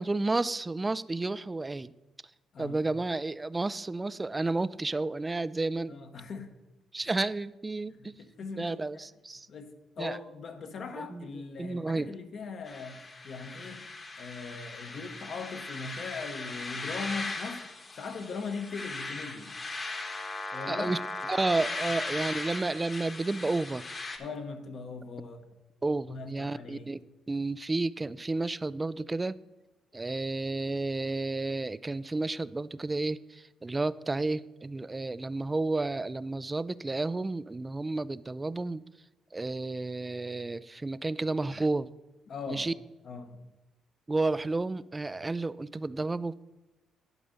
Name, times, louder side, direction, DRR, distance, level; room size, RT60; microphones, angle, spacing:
voice 1, 0.0-1.9 2.6-6.0 6.9-8.1 8.6-9.5 10.0-10.2 11.1-11.3 11.6-12.1 20.7-21.0 21.3-23.8 25.8-27.0 27.3-29.4 29.9-38.8 39.3-41.9 42.5-42.7 44.1-46.5, right 2 dB, 20° right, 18 dB, 0.3 m, -31 dB
voice 2, 5.9-6.5 7.0-7.1 8.0-8.8 9.5-13.0 13.2-13.8 14.2-17.7 18.0-19.5 20.5-20.9 24.2-25.4 26.1-26.9 42.3-42.7 43.0-43.4, left 4 dB, 55° left, 6 dB, 1.0 m, -40 dB
sound 1, 12.7-24.2, left 3 dB, 30° left, 1.1 m, -38 dB
11.0 x 5.0 x 5.6 m, 1.0 s
cardioid pair, 90°, 0 cm